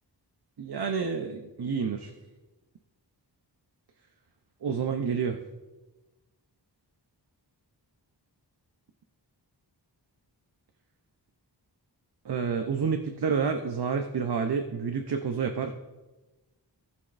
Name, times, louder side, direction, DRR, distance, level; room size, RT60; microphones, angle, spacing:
voice 1, 0.6-2.1 4.6-5.4 12.2-15.8, right 6 dB, 65° right, 5 dB, 0.7 m, -29 dB
18.0 x 6.1 x 2.6 m, 1.1 s
wide cardioid pair, 70°, 43 cm